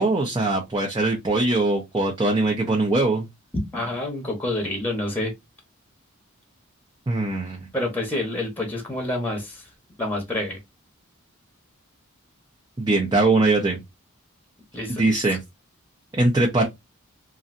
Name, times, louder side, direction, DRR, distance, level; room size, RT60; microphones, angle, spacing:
voice 1, 0.0-3.3 7.1-7.7 12.8-13.8 14.9-15.4 16.1-16.7, right 2 dB, 20° right, 0.7 m, -21 dB
voice 2, 3.7-5.3 7.7-9.6 10.0-10.6 14.7-15.2, left 1 dB, 10° left, 1.0 m, -28 dB
3.1 x 2.6 x 2.5 m
head